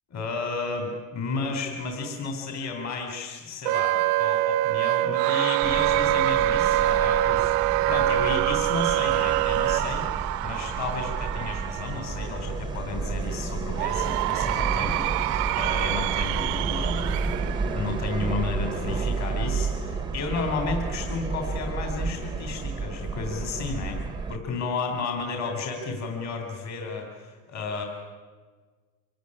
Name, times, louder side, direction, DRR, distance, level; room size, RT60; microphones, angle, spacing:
voice 1, 0.1-24.0 24.3-27.8, left 4 dB, 30° left, 4 dB, 3.8 m, -33 dB
Wind instrument woodwind instrument, 3.7-9.8, right 15 dB, 40° right, 0.6 m, -24 dB
Cheering / Crowd, 5.1-12.5 13.7-18.5, right 18 dB, 65° right, 1.1 m, -30 dB
Subway metro underground, 5.6-24.4, right 4 dB, 10° right, 1.2 m, -31 dB
25.0 x 17.0 x 10.0 m, 1.4 s
supercardioid pair, 140°, 50 cm